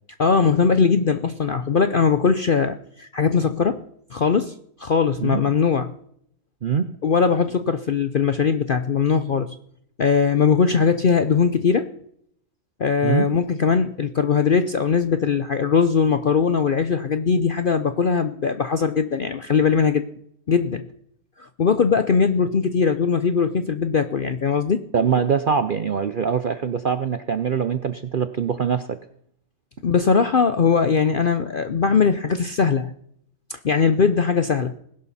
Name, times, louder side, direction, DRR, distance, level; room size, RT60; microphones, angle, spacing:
voice 1, 0.2-3.8 4.1-4.5 4.8-5.9 7.0-9.5 10.0-11.9 12.8-20.0 20.5-20.8 21.4-24.8 29.8-32.9 33.5-34.7, left 6 dB, 55° left, 10 dB, 0.6 m, -20 dB
voice 2, 6.6-6.9 13.0-13.3 24.9-29.0, right 6 dB, 55° right, 10 dB, 0.6 m, -23 dB
20.0 x 11.5 x 4.2 m, 0.68 s
omnidirectional pair, 1.6 m